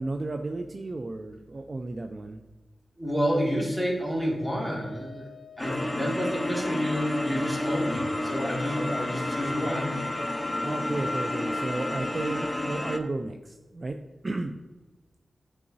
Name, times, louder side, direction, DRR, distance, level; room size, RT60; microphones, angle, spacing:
voice 1, 0.0-2.4 8.7-9.0 10.6-14.0 14.2-14.6, right 2 dB, 45° right, 6 dB, 0.4 m, -33 dB
voice 2, 3.0-5.3 5.6-10.1, equal, 5° right, -3 dB, 2.1 m, -29 dB
Wind instrument woodwind instrument, 4.1-8.6, left 1 dB, 45° left, 1.5 m, -48 dB
sound 1, 5.6-13.0, left 1 dB, 20° left, 0.7 m, -30 dB
8.5 x 4.8 x 2.7 m, 1.1 s
cardioid pair, 65°, 0 cm